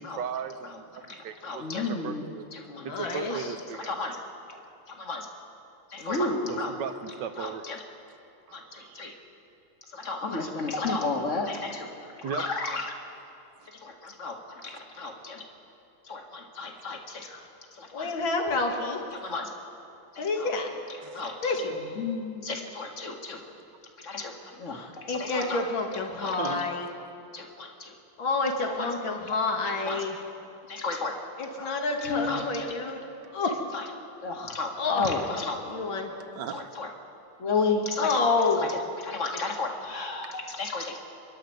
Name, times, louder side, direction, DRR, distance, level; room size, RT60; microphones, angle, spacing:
voice 1, 0.0-2.5 2.8-4.0 6.5-7.7 8.5-9.1 12.2-12.5 14.7-14.9 15.1-15.2 16.7-16.8 21.0-21.2 23.5-23.6 26.3-26.7 33.2-33.4 36.3-36.7, right 8 dB, 65° right, 10 dB, 1.5 m, -37 dB
voice 2, 1.1-2.8 3.3-3.4 3.8-4.2 5.1-5.2 5.9-6.7 7.4-7.8 8.5-9.1 9.9-11.9 12.2-12.9 13.8-14.4 14.6-15.4 16.1-17.3 17.8-18.1 19.1-19.5 20.1-20.5 21.1-21.5 21.9-23.4 24.0-24.3 24.6-25.6 26.2-26.4 27.3-27.9 28.8-28.9 29.8-30.0 30.7-31.1 31.6-31.7 32.0-32.7 33.7-33.8 34.2-35.6 36.5-36.9 37.4-38.2 38.6-38.8 39.0-41.0, left 3 dB, 40° left, 2 dB, 2.3 m, -32 dB
voice 3, 2.6-3.5 17.3-17.4 17.9-19.0 20.2-20.7 21.4-21.8 24.7-26.9 28.2-30.2 31.4-33.0 33.3-33.6 34.8-35.1 35.7-36.1 38.0-38.7, left 3 dB, 70° left, 2 dB, 2.7 m, -28 dB
28.5 x 11.5 x 8.0 m, 2.8 s
omnidirectional pair, 2.2 m